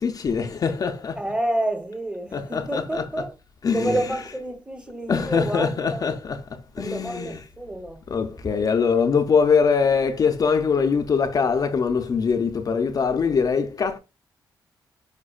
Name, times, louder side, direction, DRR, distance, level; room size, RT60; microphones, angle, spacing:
voice 1, 0.0-1.2 2.3-3.2 3.6-4.2 5.1-6.4 6.8-7.4 8.1-14.0, left 5 dB, 50° left, 0.4 m, -23 dB
voice 2, 1.2-3.4 3.7-6.1 6.8-8.0 8.4-8.5, right 1 dB, 10° right, 0.8 m, -29 dB
4.9 x 2.2 x 2.3 m
cardioid pair, 65°, 8 cm